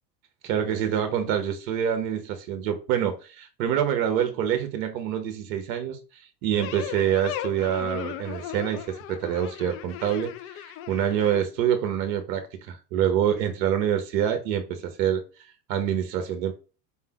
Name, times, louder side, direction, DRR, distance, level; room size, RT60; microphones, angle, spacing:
voice 1, 0.4-15.2 15.7-16.5, right 9 dB, 55° right, 1.0 m, -26 dB
sound 1, 6.5-11.4, left 12 dB, 30° left, 0.4 m, -37 dB
4.2 x 3.7 x 2.9 m
hypercardioid pair, 80°, 49 cm